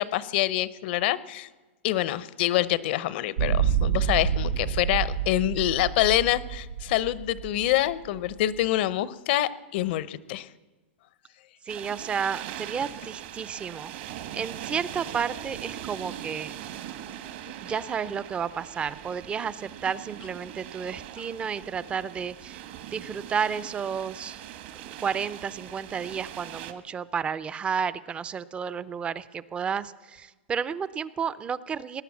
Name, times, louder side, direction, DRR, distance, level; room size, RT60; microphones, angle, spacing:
voice 1, 0.0-1.5 1.8-10.5, left 14 dB, 55° left, 17 dB, 0.7 m, -26 dB
sound 1, 3.4-8.6, right 8 dB, 85° right, 0.8 m, -28 dB
voice 2, 11.7-13.9 14.3-16.6 17.6-22.6 22.9-24.4 25.0-32.0, right 7 dB, 15° right, 18 dB, 0.5 m, -31 dB
sound 2, 11.7-26.7, right 11 dB, 55° right, 1.3 m, -41 dB
18.5 x 10.5 x 7.2 m, 1.2 s
hypercardioid pair, 140°, 7 cm